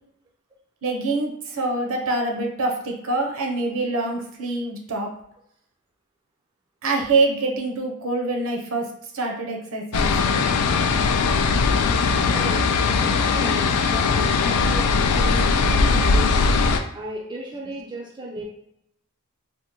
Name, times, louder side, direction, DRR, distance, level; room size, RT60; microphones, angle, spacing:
voice 1, 0.8-5.1 6.8-10.4, right 3 dB, 65° right, 1 dB, 0.7 m, -25 dB
sound 1, 9.9-16.8, left 4 dB, 90° left, 0.3 m, -20 dB
voice 2, 13.0-16.5 16.9-18.4, right 2 dB, 20° right, -2 dB, 0.3 m, -35 dB
3.5 x 2.1 x 2.9 m, 0.75 s
head